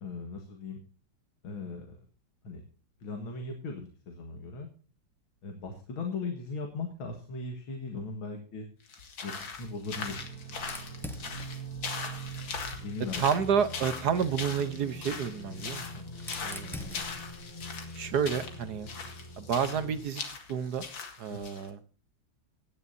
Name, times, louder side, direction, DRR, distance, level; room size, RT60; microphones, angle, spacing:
voice 1, 0.0-0.8 1.4-2.0 2.4-2.6 3.0-4.7 5.4-8.7 9.2-10.3 12.8-13.2 21.3-21.4, left 3 dB, 85° left, 4 dB, 2.5 m, -38 dB
sound 1, 8.9-21.7, left 5 dB, 70° left, 2.6 m, -40 dB
sound 2, 9.9-20.0, right 2 dB, 40° right, 5.1 m, -44 dB
Fire, 10.5-13.3 14.5-18.7, left 1 dB, ahead, 0.6 m, -47 dB
voice 2, 13.2-15.8 16.4-17.0 17.9-18.9 19.4-20.2 20.5-20.8 21.2-21.8, right 7 dB, 60° right, 12 dB, 1.3 m, -30 dB
17.5 x 11.0 x 2.7 m, 0.39 s
omnidirectional pair, 2.2 m